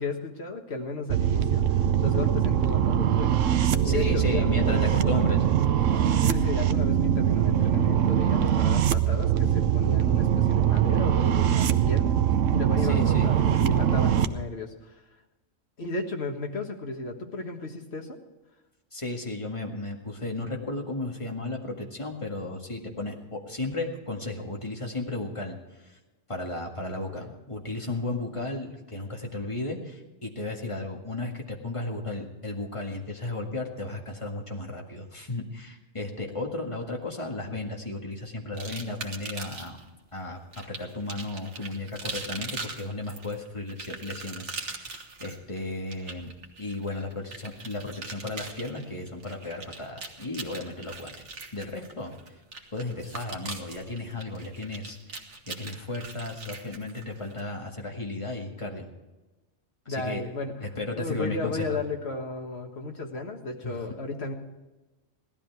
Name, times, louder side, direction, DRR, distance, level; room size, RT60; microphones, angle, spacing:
voice 1, 0.0-1.6 2.0-3.4 3.8-5.4 6.2-12.2 12.5-14.9 15.8-18.2 27.1-27.3 59.9-60.5 61.0-64.3, left 3 dB, 55° left, 3 dB, 1.8 m, -34 dB
sound 1, 1.1-14.3, right 10 dB, 80° right, 1.1 m, -22 dB
voice 2, 3.8-5.4 12.8-13.3 18.9-25.6 25.8-26.0 26.3-39.8 40.1-46.3 46.6-51.1 51.5-52.1 52.7-58.9 59.9-60.2 60.6-61.8 63.6-63.8, left 2 dB, 25° left, 0 dB, 2.0 m, -34 dB
sound 2, 38.6-39.8 40.5-57.4, right 3 dB, 65° right, 1.8 m, -41 dB
17.0 x 12.5 x 4.7 m, 1.1 s
omnidirectional pair, 1.3 m